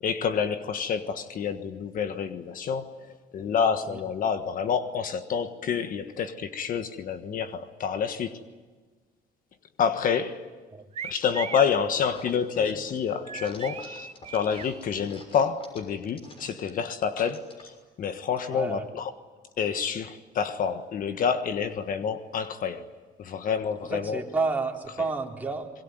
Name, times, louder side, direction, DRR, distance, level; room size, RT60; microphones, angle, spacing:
voice 1, 0.0-8.4 9.8-10.5 11.0-19.1 19.6-22.9 23.2-24.2, left 7 dB, 55° left, 9 dB, 1.5 m, -28 dB
sound 1, 10.9-11.7 13.2-14.7, right 7 dB, 40° right, 1.1 m, -38 dB
sound 2, 11.2-11.7 12.1-13.0 13.3-17.8, left 1 dB, 35° left, 6.6 m, -48 dB
voice 2, 18.5-18.9 23.9-25.7, right 3 dB, 10° right, -1 dB, 3.8 m, -30 dB
25.5 x 22.5 x 9.4 m, 1.4 s
cardioid pair, 110°, 17 cm